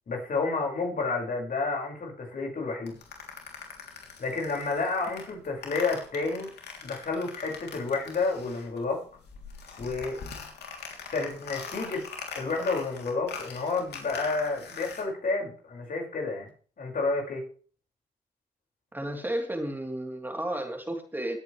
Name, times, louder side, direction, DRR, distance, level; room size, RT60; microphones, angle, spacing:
voice 1, 0.1-3.0 4.2-6.5 6.8-9.0 9.8-10.2 11.1-12.0 12.3-16.5 16.8-17.4, left 3 dB, 55° left, 0 dB, 5.9 m, -30 dB
sound 1, 2.9-8.9 9.1-15.0, left 5 dB, 70° left, 3.4 m, -42 dB
voice 2, 18.9-21.4, right 1 dB, 10° right, 3 dB, 3.5 m, -32 dB
20.0 x 9.2 x 3.4 m, 0.42 s
supercardioid pair, 60°, 17 cm